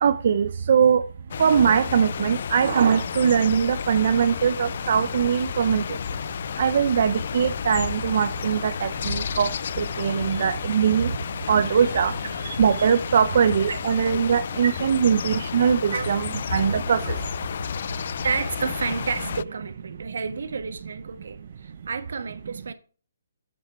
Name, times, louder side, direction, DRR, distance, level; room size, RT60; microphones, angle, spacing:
voice 1, 0.0-1.1 1.4-6.0 6.6-11.1 11.5-17.2, right 7 dB, 55° right, 0.7 m, -21 dB
sound 1, 1.3-19.4, left 7 dB, 55° left, 0.4 m, -32 dB
voice 2, 18.2-22.7, right 5 dB, 75° right, 1.5 m, -30 dB
8.5 x 7.9 x 4.7 m
hypercardioid pair, 150°, 0 cm